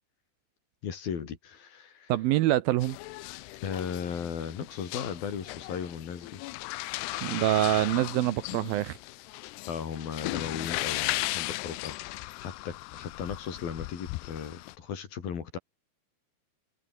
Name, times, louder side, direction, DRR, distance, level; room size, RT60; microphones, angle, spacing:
voice 1, 0.8-2.1 3.6-6.4 9.7-15.6, left 7 dB, 60° left, 4.8 m, -36 dB
voice 2, 2.1-3.0 7.2-9.0, right 15 dB, 75° right, 2.4 m, -25 dB
sound 1, 2.8-14.8, left 20 dB, 80° left, 2.7 m, -37 dB
omnidirectional pair, 4.8 m